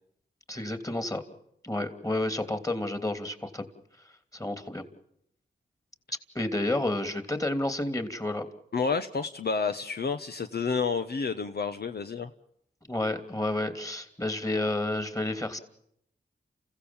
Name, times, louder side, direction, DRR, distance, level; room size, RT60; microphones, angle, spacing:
voice 1, 0.5-1.2 1.6-3.6 4.3-4.9 6.3-8.5 12.9-15.6, left 1 dB, 20° left, 9 dB, 3.0 m, -30 dB
voice 2, 8.7-12.3, left 5 dB, 60° left, 8 dB, 1.0 m, -30 dB
29.0 x 16.0 x 7.3 m, 0.75 s
cardioid pair, 50°, 19 cm